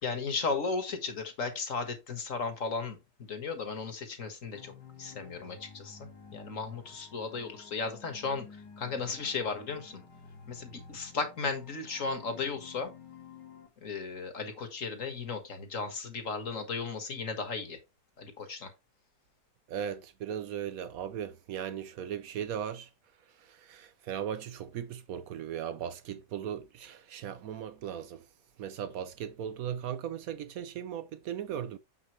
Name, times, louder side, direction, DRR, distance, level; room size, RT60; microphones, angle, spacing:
voice 1, 0.0-4.7 5.0-10.0 10.5-12.9 13.8-17.8 18.2-18.7, left 4 dB, 50° left, 1.9 m, -35 dB
sound 1, 4.5-13.7, left 6 dB, 90° left, 2.6 m, -52 dB
voice 2, 19.7-22.9 23.4-28.2 28.6-31.8, right 9 dB, 70° right, 0.9 m, -37 dB
7.0 x 6.1 x 3.1 m
omnidirectional pair, 1.8 m